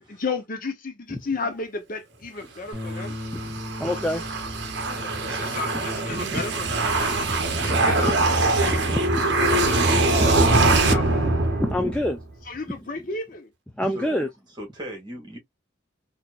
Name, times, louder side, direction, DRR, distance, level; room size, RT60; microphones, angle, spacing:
voice 1, 0.1-3.1 4.7-6.7 7.0-7.2 7.6-8.1 8.7-8.8 9.4-10.3 10.8-11.0 12.5-13.5, left 3 dB, 40° left, 0.7 m, -33 dB
voice 2, 2.4-2.8 13.9-14.2 14.6-15.4, equal, 20° right, 2.0 m, -39 dB
Bass guitar, 2.7-9.0, left 1 dB, 20° left, 1.6 m, -39 dB
sound 1, 2.8-12.2, right 2 dB, 55° right, 0.8 m, -23 dB
voice 3, 3.8-4.2 5.7-6.5 6.8-9.2 10.9-12.2 12.8-13.1 13.8-14.3, left 1 dB, 5° left, 0.4 m, -30 dB
4.2 x 2.6 x 2.3 m
head